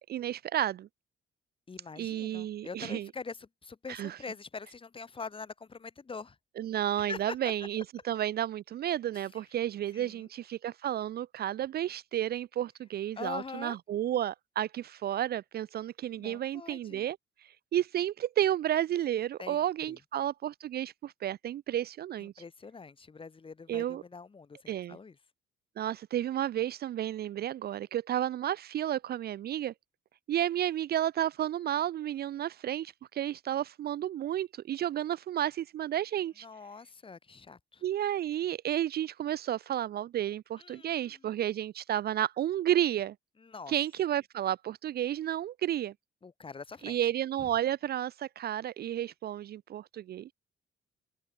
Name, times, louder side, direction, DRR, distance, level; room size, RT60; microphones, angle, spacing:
voice 1, 0.1-0.9 2.0-3.1 3.9-4.2 6.6-17.2 17.7-22.3 23.7-24.0 24.7-25.0 25.8-29.7 30.3-36.5 37.8-43.2 43.7-45.9 46.8-50.3, right 11 dB, 55° right, 0.4 m, -32 dB
voice 2, 1.7-6.4 7.0-7.5 9.1-9.4 9.9-10.3 13.1-13.8 16.1-17.1 19.4-20.0 22.2-25.2 36.4-37.8 40.6-41.4 43.4-43.7 46.2-47.1 47.4-47.5, left 4 dB, 25° left, 1.1 m, -44 dB
open air
cardioid pair, 90°, 20 cm